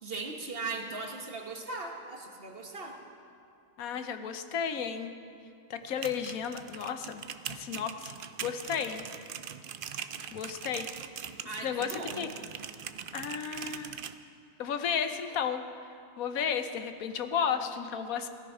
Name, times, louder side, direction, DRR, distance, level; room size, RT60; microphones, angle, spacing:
voice 1, 0.0-3.0 11.4-12.3, right 3 dB, 40° right, 2 dB, 1.5 m, -38 dB
voice 2, 3.8-5.1 5.7-7.2 7.5-8.1 8.4-9.1 10.3-10.9 11.6-12.3 13.1-14.0 14.6-15.6 16.2-18.3, left 7 dB, 70° left, 8 dB, 1.2 m, -33 dB
sound 1, 5.8-14.1, right 8 dB, 70° right, 0.5 m, -42 dB
16.5 x 13.5 x 5.5 m, 2.4 s
omnidirectional pair, 1.6 m